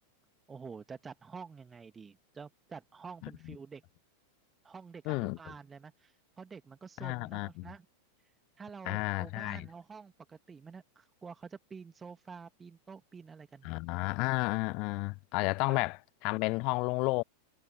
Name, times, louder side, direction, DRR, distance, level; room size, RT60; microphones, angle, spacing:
voice 1, 0.5-3.8 4.6-7.8 8.6-13.8 15.7-15.8, right 5 dB, 15° right, 1.7 m, -48 dB
voice 2, 3.2-3.6 5.1-5.4 7.0-7.7 8.9-9.7 13.6-17.2, left 27 dB, 45° left, 0.3 m, -32 dB
figure-of-eight pair, 90°, 0 cm